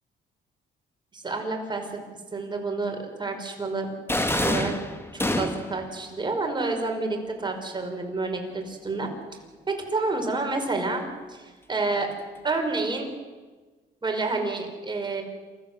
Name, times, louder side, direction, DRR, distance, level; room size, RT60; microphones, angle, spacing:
voice 1, 1.1-2.0 2.3-3.9 4.4-4.7 5.1-9.1 9.7-12.1 12.4-13.1 14.0-15.2, right 3 dB, 20° right, 3 dB, 5.2 m, -29 dB
sound 1, 4.1-5.8, left 1 dB, 10° left, 2.1 m, -26 dB
28.0 x 14.5 x 8.1 m, 1.3 s
cardioid pair, 90°, 20 cm